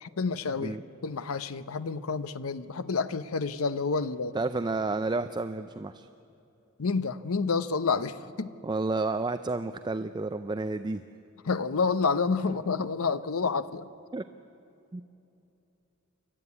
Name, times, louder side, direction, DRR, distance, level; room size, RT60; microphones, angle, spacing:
voice 1, 0.0-4.4 6.8-8.5 11.4-13.9, left 4 dB, 80° left, 13 dB, 0.7 m, -29 dB
voice 2, 4.3-6.1 8.6-11.0 14.1-14.2 14.9-15.0, right 3 dB, 20° right, 10 dB, 0.4 m, -30 dB
28.0 x 13.0 x 9.7 m, 2.8 s
head